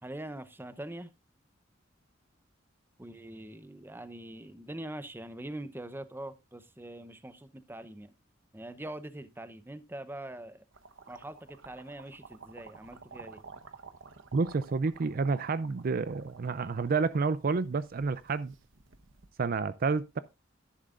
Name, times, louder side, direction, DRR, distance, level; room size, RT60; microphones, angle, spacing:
voice 1, 0.0-1.1 3.0-8.1 8.5-10.6 11.1-13.4, right 1 dB, 10° right, 0.8 m, -43 dB
sound 1, 10.7-19.3, right 4 dB, 75° right, 1.0 m, -52 dB
voice 2, 14.3-18.5 19.4-20.2, right 4 dB, 50° right, 0.5 m, -29 dB
11.0 x 10.5 x 2.4 m
head